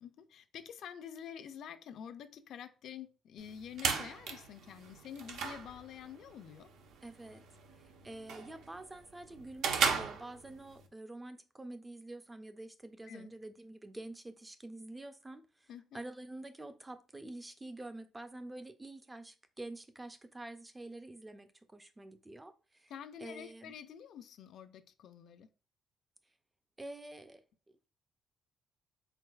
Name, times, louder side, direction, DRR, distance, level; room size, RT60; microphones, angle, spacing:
voice 1, 0.0-6.7 13.1-13.3 15.7-16.0 22.9-25.5, left 8 dB, 60° left, 0.4 m, -48 dB
sound 1, 3.4-10.9, right 6 dB, 75° right, 0.6 m, -37 dB
voice 2, 7.0-7.4 7.7-22.9 23.2-23.7 26.8-27.9, right 2 dB, 10° right, 0.3 m, -48 dB
4.5 x 4.0 x 2.3 m
cardioid pair, 155°, 0 cm